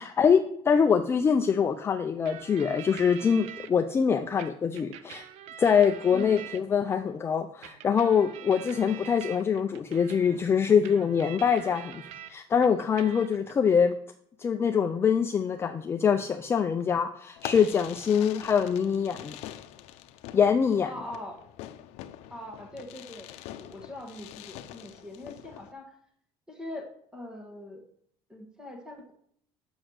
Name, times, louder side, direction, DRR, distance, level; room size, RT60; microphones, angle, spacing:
voice 1, 0.0-5.2 5.6-12.0 12.3-14.0 14.4-19.4 20.3-20.9, left 7 dB, 20° left, 6 dB, 0.4 m, -24 dB
sound 1, 2.3-3.7 4.4-7.0 7.6-12.3 12.6-13.5, right 10 dB, 70° right, 0.8 m, -45 dB
voice 2, 6.1-6.4 20.8-21.4 22.3-25.9 26.5-27.8 28.3-29.1, left 1 dB, 5° right, 3 dB, 1.6 m, -42 dB
Fireworks, 17.4-25.7, left 12 dB, 70° left, 0.7 m, -44 dB
7.9 x 6.3 x 6.4 m, 0.67 s
cardioid pair, 155°, 11 cm